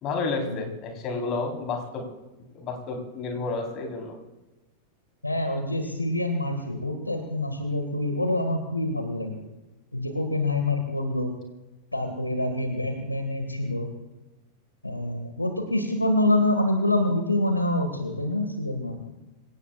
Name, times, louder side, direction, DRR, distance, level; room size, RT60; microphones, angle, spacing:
voice 1, 0.0-2.0 2.5-4.2, left 3 dB, 35° left, 1 dB, 4.1 m, -31 dB
voice 2, 5.2-9.5 9.9-11.3 11.9-13.9 14.8-19.1, left 1 dB, 85° left, 6 dB, 1.9 m, -26 dB
26.0 x 17.0 x 2.5 m, 1.0 s
figure-of-eight pair, 90°, 0 cm